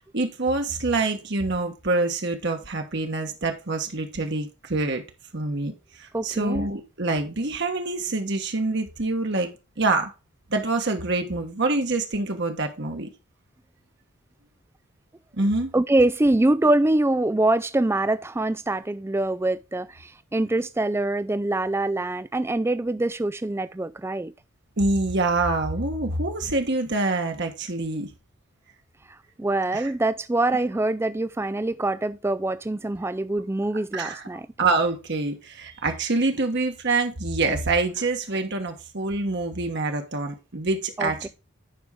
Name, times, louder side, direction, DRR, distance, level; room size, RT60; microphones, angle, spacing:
voice 1, 0.1-5.0 5.3-10.1 10.5-13.1 15.3-15.7 24.8-28.1 29.7-29.9 33.9-34.2 34.6-41.3, right 3 dB, 50° right, 1.3 m, -26 dB
voice 2, 6.1-6.7 15.7-24.3 29.4-34.5 41.0-41.3, right 2 dB, 10° right, 0.3 m, -24 dB
10.5 x 5.4 x 3.7 m
head